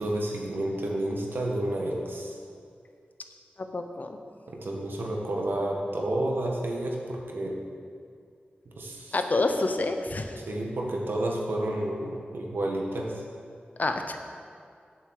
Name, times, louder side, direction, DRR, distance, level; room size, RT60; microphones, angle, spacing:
voice 1, 0.0-2.4 4.5-7.6 8.7-9.2 10.5-13.1, right 1 dB, 80° right, -1 dB, 1.7 m, -30 dB
voice 2, 3.6-4.2 9.1-10.4 13.8-14.2, left 2 dB, 50° left, 6 dB, 0.9 m, -28 dB
8.2 x 7.3 x 7.5 m, 2.3 s
wide cardioid pair, 85°, 4 cm